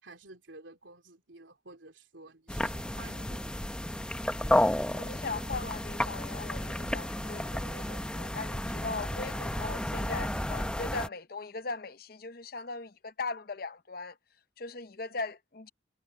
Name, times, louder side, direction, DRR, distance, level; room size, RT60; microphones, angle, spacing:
voice 1, 0.0-3.7, right 2 dB, 80° right, 3.4 m, -52 dB
sound 1, 2.5-11.1, left 1 dB, 5° left, 0.9 m, -32 dB
voice 2, 4.9-14.2 14.6-15.7, left 4 dB, 50° left, 0.7 m, -39 dB
head